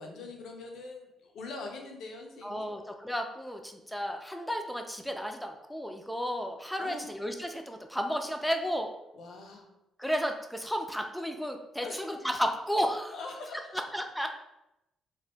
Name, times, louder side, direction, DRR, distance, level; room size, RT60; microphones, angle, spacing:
voice 1, 0.0-2.8 6.8-7.1 9.1-9.7 11.8-12.1 13.1-13.8, left 3 dB, 70° left, 2 dB, 0.6 m, -43 dB
voice 2, 2.4-8.9 10.0-13.1 13.9-14.3, equal, 5° left, 4 dB, 0.3 m, -33 dB
2.8 x 2.1 x 3.3 m, 0.88 s
cardioid pair, 90°, 0 cm